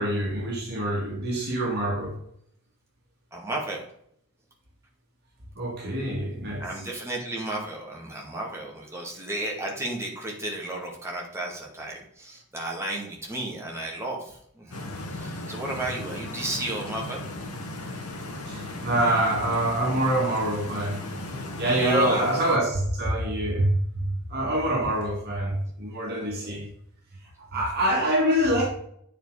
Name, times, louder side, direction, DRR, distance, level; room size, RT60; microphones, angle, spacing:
voice 1, 0.0-2.2 5.6-6.6 18.5-21.0 21.6-26.7 27.4-28.6, right 1 dB, 50° right, -2 dB, 2.0 m, -25 dB
voice 2, 3.3-3.8 6.6-17.2 21.7-22.3 26.2-26.6 27.5-27.6, right 1 dB, 10° right, -2 dB, 2.2 m, -33 dB
Stream, 14.7-22.6, left 1 dB, 75° left, 1.8 m, -36 dB
8.7 x 5.0 x 4.9 m, 0.69 s
head